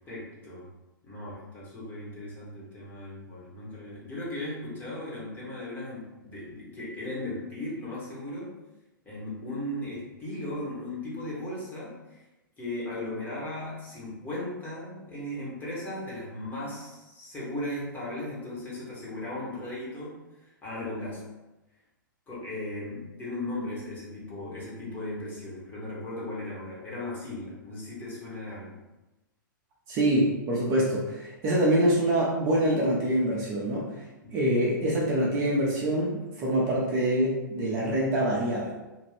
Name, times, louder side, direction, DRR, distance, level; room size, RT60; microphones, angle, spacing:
voice 1, 0.1-0.7 1.0-8.5 9.0-12.2 12.6-21.3 22.3-28.8, left 1 dB, 15° left, -7 dB, 1.1 m, -37 dB
voice 2, 29.9-34.0 34.3-38.7, right 1 dB, 30° right, -5 dB, 0.7 m, -25 dB
2.6 x 2.5 x 3.3 m, 1.0 s
figure-of-eight pair, 105°, 11 cm